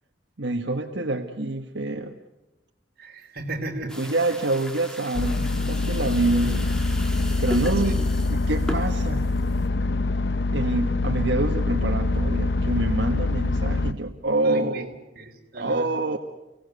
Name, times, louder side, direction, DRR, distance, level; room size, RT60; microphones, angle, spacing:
voice 1, 0.4-2.2 4.0-6.6 7.4-9.2 10.5-14.9 15.5-16.2, right 2 dB, 85° right, 3 dB, 1.5 m, -26 dB
voice 2, 3.0-4.2 7.8-8.0 14.4-15.9, right 2 dB, 55° right, 2 dB, 3.6 m, -36 dB
sound 1, 3.9-9.7, equal, 5° left, 2.3 m, -38 dB
sound 2, 5.1-13.9, left 2 dB, 65° left, 0.8 m, -24 dB
30.0 x 17.5 x 8.2 m, 1.0 s
head